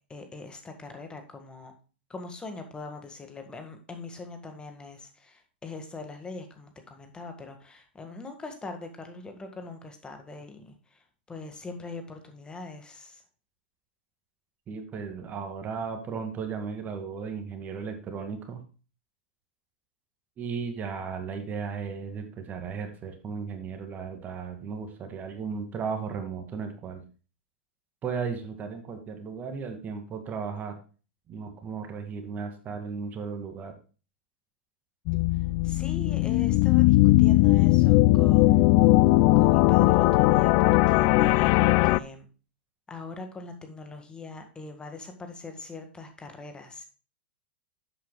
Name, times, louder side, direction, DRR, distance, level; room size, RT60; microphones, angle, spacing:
voice 1, 0.1-1.7 2.1-13.2 35.3-38.7 39.4-42.3 42.9-46.8, left 3 dB, 15° left, 5 dB, 1.7 m, -42 dB
voice 2, 14.7-18.6 20.4-27.0 28.0-30.8 31.3-33.7, right 5 dB, 30° right, 6 dB, 2.1 m, -35 dB
sound 1, 35.1-42.0, left 18 dB, 45° left, 0.4 m, -19 dB
11.5 x 8.5 x 2.3 m, 0.35 s
hypercardioid pair, 100°, 6 cm